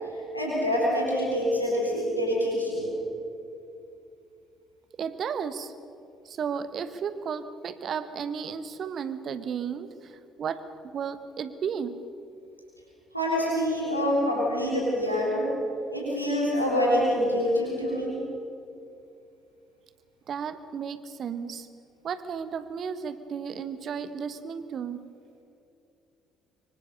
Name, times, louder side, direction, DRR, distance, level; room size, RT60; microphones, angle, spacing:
voice 1, 0.3-2.9 13.1-15.4 15.9-18.1, equal, 90° left, -5 dB, 4.3 m, -26 dB
voice 2, 5.0-5.7 6.2-10.6 10.9-12.0 20.3-21.7 22.0-25.1, right 7 dB, 45° right, 12 dB, 1.3 m, -34 dB
25.0 x 24.0 x 6.8 m, 2.6 s
figure-of-eight pair, 50°, 0 cm